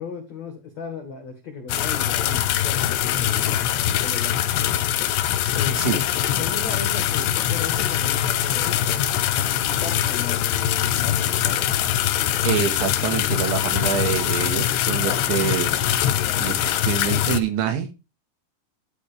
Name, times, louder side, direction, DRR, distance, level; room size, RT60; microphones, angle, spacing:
voice 1, 0.0-4.4 5.5-6.0 6.4-11.7, left 5 dB, 55° left, 2.0 m, -36 dB
sound 1, 1.7-17.4, left 11 dB, 75° left, 2.8 m, -23 dB
voice 2, 12.4-15.7 16.4-17.9, right 9 dB, 75° right, 3.9 m, -26 dB
12.0 x 10.0 x 3.4 m
omnidirectional pair, 5.6 m